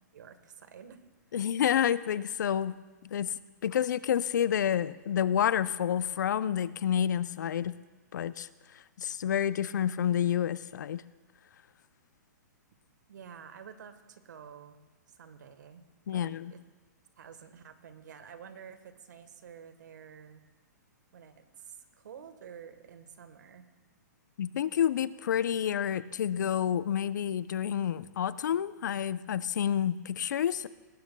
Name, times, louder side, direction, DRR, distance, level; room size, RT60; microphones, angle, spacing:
voice 1, 0.1-1.0 13.1-14.8 15.1-16.6 17.2-20.4 21.1-23.7, right 7 dB, 75° right, 10 dB, 1.3 m, -50 dB
voice 2, 1.3-2.7 3.0-3.3 3.6-7.7 8.1-8.5 8.7-11.0 16.1-16.5 24.4-30.7, left 9 dB, 75° left, 15 dB, 0.5 m, -29 dB
19.0 x 15.5 x 2.3 m, 1.3 s
hypercardioid pair, 145°, 10 cm